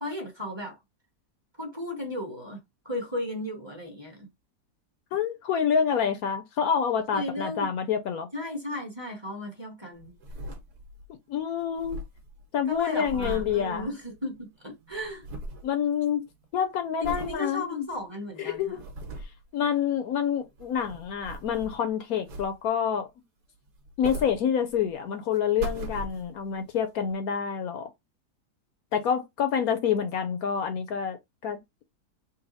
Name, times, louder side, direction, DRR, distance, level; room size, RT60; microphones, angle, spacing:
voice 1, 0.0-0.8 1.6-4.3 7.1-7.7 8.3-10.1 12.7-15.2 17.0-18.8, left 1 dB, 20° right, 1.1 m, -35 dB
voice 2, 5.1-8.3 11.3-12.0 12.5-13.9 15.6-16.3 16.5-17.9 18.4-18.8 19.5-23.1 24.0-27.9 28.9-31.2 31.4-31.6, left 8 dB, 70° left, 1.1 m, -27 dB
sound 1, 10.0-11.1 11.4-11.5 11.6-14.4 14.7-15.7 16.1-16.5 17.0-17.4 17.9-18.0 18.6-19.4 20.4-21.9 22.3-22.8 23.7-24.9 25.3-26.5 27.1-27.2, right 1 dB, 75° right, 1.7 m, -39 dB
4.0 x 2.3 x 4.0 m
omnidirectional pair, 1.7 m